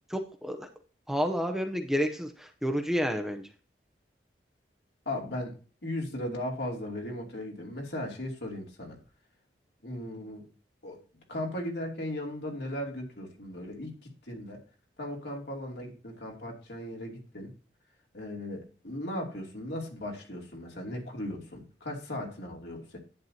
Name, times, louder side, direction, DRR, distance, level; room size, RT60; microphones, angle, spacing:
voice 1, 0.1-0.7 1.1-2.3 2.6-3.4, equal, ahead, 0.7 m, -29 dB
voice 2, 5.0-5.6 5.8-9.0 9.8-10.5 10.8-11.0 11.3-14.6 15.0-17.5 18.1-23.0, left 1 dB, 75° left, 2.9 m, -37 dB
11.0 x 9.1 x 2.8 m
head